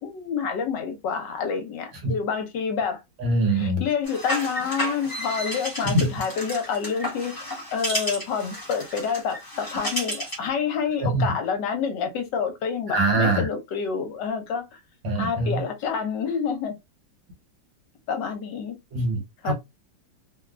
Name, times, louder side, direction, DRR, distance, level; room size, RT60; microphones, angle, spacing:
voice 1, 0.0-3.0 3.5-14.8 15.1-16.7 18.1-18.8 19.4-19.5, left 6 dB, 70° left, 1.3 m, -28 dB
voice 2, 3.2-3.8 5.8-6.1 11.0-11.3 12.9-13.5 15.0-15.6 18.9-19.5, right 2 dB, 75° right, 1.8 m, -23 dB
sound 1, 4.0-10.5, equal, 15° left, 0.7 m, -32 dB
3.5 x 2.3 x 2.4 m
omnidirectional pair, 2.1 m